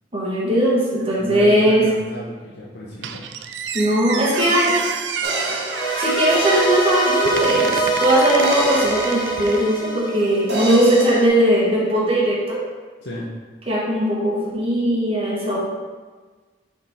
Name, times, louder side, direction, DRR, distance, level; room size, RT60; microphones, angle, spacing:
voice 1, 0.1-1.8 3.7-4.8 6.0-12.6 13.7-15.6, equal, 35° right, -5 dB, 1.4 m, -19 dB
voice 2, 1.2-3.2 13.0-13.3, left 1 dB, 75° left, -6 dB, 0.9 m, -34 dB
Squeak, 3.0-9.9, right 6 dB, 85° right, 0.4 m, -29 dB
sound 1, 5.2-7.8 8.4-10.1 10.5-11.3, right 1 dB, 70° right, 1.2 m, -29 dB
sound 2, 5.7-10.9, right 2 dB, 25° left, 0.6 m, -23 dB
6.1 x 3.7 x 4.3 m, 1.4 s
head